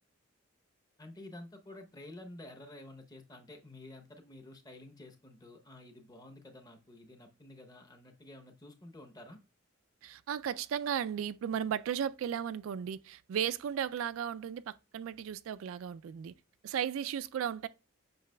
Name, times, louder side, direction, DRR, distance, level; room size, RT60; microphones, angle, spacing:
voice 1, 1.0-9.4, left 1 dB, 20° left, 0.7 m, -51 dB
voice 2, 10.0-16.3 16.6-17.7, right 8 dB, 75° right, 0.3 m, -35 dB
7.8 x 5.8 x 2.2 m
head